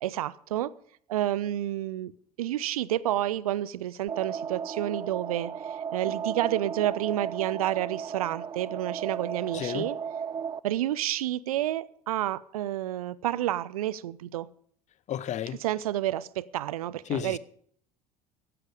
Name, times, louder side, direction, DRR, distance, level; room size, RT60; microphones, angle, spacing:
voice 1, 0.0-0.7 1.1-2.1 2.4-5.5 5.9-10.0 10.6-14.5 15.6-17.4, right 13 dB, 70° right, 0.6 m, -29 dB
sound 1, 4.1-10.6, right 7 dB, 20° right, 0.5 m, -35 dB
voice 2, 9.5-9.9 15.1-15.6 17.1-17.4, left 10 dB, 40° left, 0.9 m, -32 dB
15.5 x 11.0 x 5.0 m
figure-of-eight pair, 65°, 19 cm